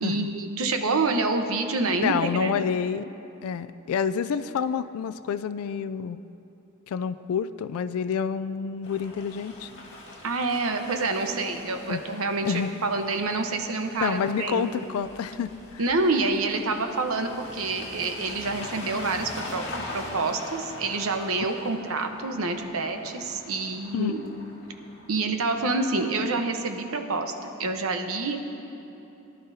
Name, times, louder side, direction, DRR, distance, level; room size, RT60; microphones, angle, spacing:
voice 1, 0.0-2.5 10.2-14.7 15.8-19.7 19.9-24.2 25.1-27.3 27.6-28.4, right 3 dB, 80° right, 5 dB, 0.9 m, -27 dB
voice 2, 1.9-3.1 3.4-6.2 6.9-9.7 11.9-12.0 12.4-12.7 14.0-15.8 23.9-24.1, left 7 dB, 85° left, 12 dB, 0.3 m, -28 dB
sound 1, 8.8-26.5, left 1 dB, 60° left, 2.1 m, -42 dB
21.0 x 11.0 x 2.7 m, 3.0 s
head